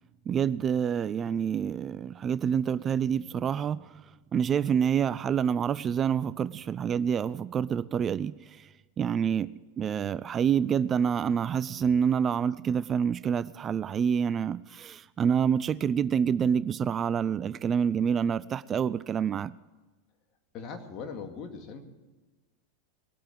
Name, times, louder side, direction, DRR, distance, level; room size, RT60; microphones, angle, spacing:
voice 1, 0.3-3.9 4.3-8.7 9.0-19.5, right 7 dB, 30° right, 0.4 m, -27 dB
voice 2, 20.5-21.8, left 5 dB, 45° left, 2.4 m, -40 dB
20.0 x 8.6 x 7.7 m
hypercardioid pair, 95°, 0 cm